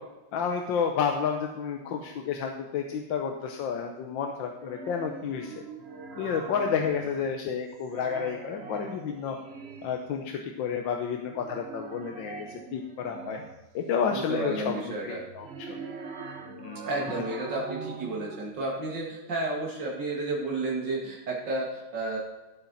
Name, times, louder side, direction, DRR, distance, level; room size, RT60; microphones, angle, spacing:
voice 1, 0.3-5.5 6.2-9.4 9.8-13.4 13.7-15.8 16.6-16.9, left 6 dB, 85° left, 4 dB, 1.6 m, -30 dB
sound 1, 4.6-7.5 7.8-10.1 11.2-13.8 15.2-18.5, right 5 dB, 45° right, 1.0 m, -42 dB
voice 2, 14.1-15.2 16.8-22.2, right 2 dB, 70° right, -3 dB, 2.6 m, -32 dB
15.5 x 8.5 x 4.1 m, 1.1 s
omnidirectional pair, 2.0 m